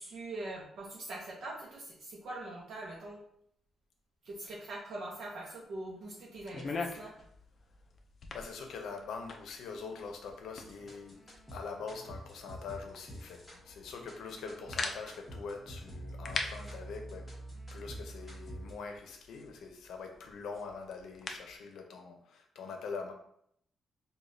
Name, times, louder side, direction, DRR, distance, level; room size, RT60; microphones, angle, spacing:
voice 1, 0.0-3.2 4.2-7.1, right 2 dB, 60° right, -3 dB, 0.6 m, -43 dB
sound 1, 6.3-21.6, left 3 dB, 40° left, 0.4 m, -45 dB
voice 2, 8.3-11.2 11.5-17.2 17.7-23.1, left 5 dB, 90° left, 4 dB, 0.6 m, -43 dB
sound 2, 10.5-18.7, right 1 dB, 10° left, 1.1 m, -47 dB
4.8 x 2.3 x 2.6 m, 0.69 s
wide cardioid pair, 165°, 0 cm